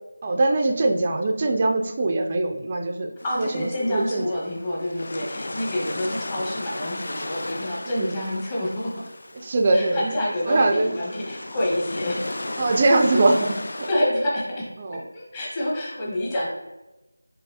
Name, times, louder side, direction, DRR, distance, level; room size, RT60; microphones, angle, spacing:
voice 1, 0.2-4.2 5.2-5.3 7.9-8.1 9.4-10.1 10.5-11.0 12.6-13.9 14.8-15.0, right 2 dB, 25° right, 4 dB, 0.3 m, -22 dB
sound 1, 3.2-13.9, left 2 dB, 55° left, 0.3 m, -35 dB
voice 2, 3.2-9.1 9.7-12.4 13.9-16.5, left 1 dB, 15° left, -6 dB, 0.8 m, -28 dB
4.6 x 3.0 x 2.7 m, 1.0 s
figure-of-eight pair, 170°, 0 cm